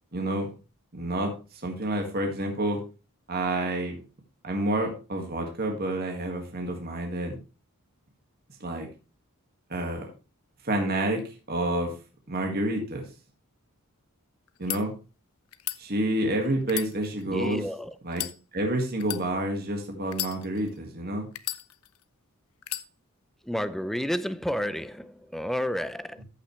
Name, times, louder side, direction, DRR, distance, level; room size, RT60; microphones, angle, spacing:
voice 1, 0.1-0.5 0.9-1.3 1.6-2.8 3.3-4.0 4.4-7.4 8.6-8.9 9.7-10.0 10.6-11.2 11.5-11.9 12.3-13.0 14.6-14.9 15.8-17.6 18.0-18.2 18.5-21.3, right 1 dB, 45° right, 1.8 m, -28 dB
sound 1, 14.5-14.8 15.5-15.8 16.6-17.5 18.1-18.4 19.0-19.2 20.1-20.8 21.4-22.0 22.6-22.9, left 15 dB, 85° left, 0.6 m, -34 dB
voice 2, 17.2-18.0 23.4-26.2, equal, ahead, 0.4 m, -31 dB
14.0 x 5.8 x 3.2 m
head